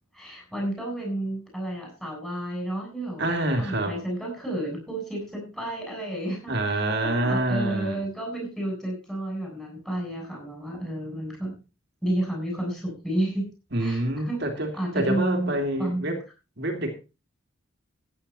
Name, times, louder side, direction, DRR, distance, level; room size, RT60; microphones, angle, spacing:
voice 1, 0.1-11.6 12.0-13.5 13.8-14.4 14.7-16.2, right 1 dB, ahead, -1 dB, 7.9 m, -31 dB
voice 2, 3.2-4.0 6.5-8.0 13.7-16.2 16.6-16.9, right 1 dB, 55° right, 4 dB, 2.9 m, -27 dB
16.0 x 9.8 x 4.3 m, 0.31 s
head